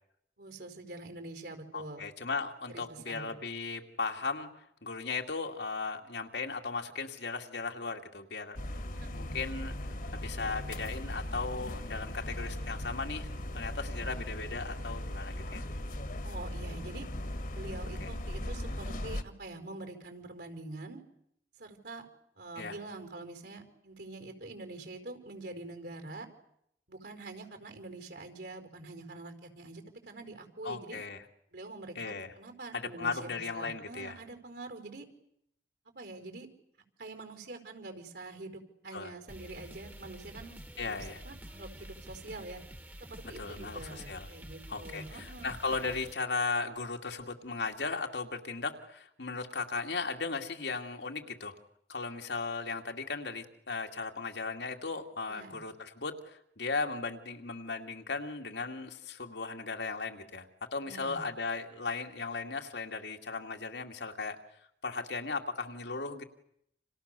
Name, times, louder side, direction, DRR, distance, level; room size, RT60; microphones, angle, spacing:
voice 1, 0.4-2.0 2.7-3.3 8.9-9.3 16.2-17.0 17.5-21.0 21.6-22.1 22.4-26.3 26.9-31.0 31.5-35.1 35.9-36.5 37.0-42.6 43.0-45.5 55.3-55.6 60.8-61.2, right 2 dB, 75° right, 6 dB, 4.9 m, -45 dB
voice 2, 1.7-8.6 9.1-13.3 13.5-15.6 18.0-18.1 22.6-22.8 30.6-31.2 32.0-32.3 32.7-34.2 38.9-39.1 40.8-41.2 43.4-44.3 44.7-51.6 51.9-64.4 64.8-66.2, left 4 dB, 80° left, 4 dB, 2.3 m, -37 dB
sound 1, 8.6-19.2, left 1 dB, 50° left, 1.7 m, -38 dB
sound 2, 39.3-46.1, equal, 10° right, 1.4 m, -48 dB
30.0 x 27.5 x 6.8 m, 0.75 s
head